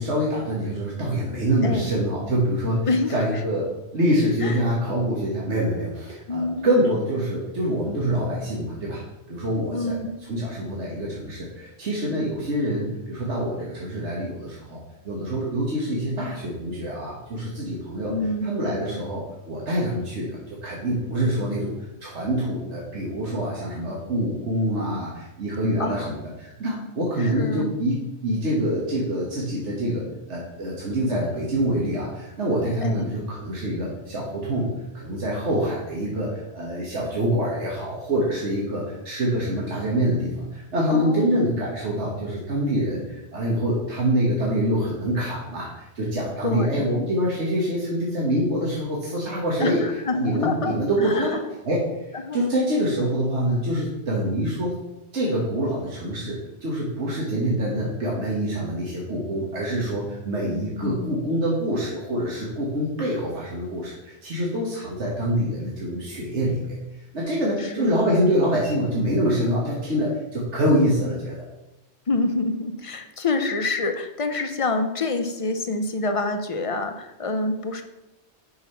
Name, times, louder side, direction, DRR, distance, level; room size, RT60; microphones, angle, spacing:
voice 1, 0.0-9.0 9.3-10.0 10.3-14.8 15.1-18.1 18.4-21.8 22.0-49.8 50.1-51.4 51.7-51.8 52.3-54.8 55.1-66.8 67.1-71.4, equal, 90° right, -4 dB, 1.6 m, -25 dB
voice 2, 1.6-1.9 2.9-3.1 4.4-4.5 6.3-6.7 9.7-10.2 18.1-18.5 25.8-26.1 27.2-27.7 32.8-33.2 40.9-41.6 46.4-46.9 49.6-50.8 51.0-51.4 52.1-52.4 60.8-61.2 67.6-67.9 72.1-77.8, left 3 dB, 40° left, 6 dB, 0.5 m, -27 dB
5.6 x 4.8 x 5.5 m, 0.97 s
omnidirectional pair, 1.1 m